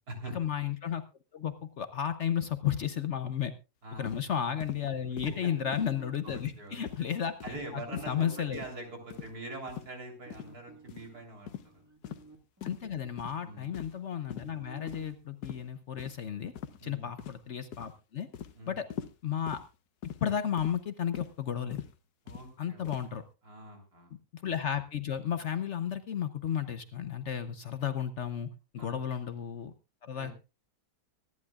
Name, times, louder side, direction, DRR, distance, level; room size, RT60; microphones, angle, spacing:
voice 1, 0.3-1.0 1.3-3.5 4.0-7.3 7.7-8.6 12.6-16.5 16.8-18.3 18.7-18.9 19.2-19.6 20.2-21.8 22.6-23.2 24.3-28.5 28.7-29.7 30.0-30.3, left 9 dB, 55° left, 11 dB, 0.9 m, -33 dB
sound 1, 4.1-4.3 4.6-4.8 5.2-5.4 5.7-6.0 6.3-6.6 6.9-7.1 7.4-7.6 8.0-8.2 8.5-8.8 9.1-9.3 9.7-9.9 10.3-10.5 10.9-11.1 11.5-11.7 12.0-12.2 12.6-12.8 13.2-13.4 13.7-14.0 14.3-14.5 14.9-15.1 15.4-15.6 16.0-16.1 16.6-16.8 17.2-17.5 17.7-18.0 18.3-18.5 18.9-19.2 19.5-19.7 20.0-20.2 20.6-20.8 21.1-21.3 21.7-21.9 22.3-22.5 22.8-23.1, left 9 dB, 80° left, 1.4 m, -42 dB
sound 2, 4.8-9.6 10.3-15.1, right 2 dB, 10° right, 1.8 m, -53 dB
voice 2, 6.2-6.8 7.4-11.8 13.4-13.7 16.8-17.1 18.5-18.8 22.3-22.9 23.4-24.1 28.8-29.0 30.1-30.3, right 2 dB, 70° right, 2 dB, 4.1 m, -44 dB
24.5 x 11.0 x 2.4 m, 0.29 s
omnidirectional pair, 1.7 m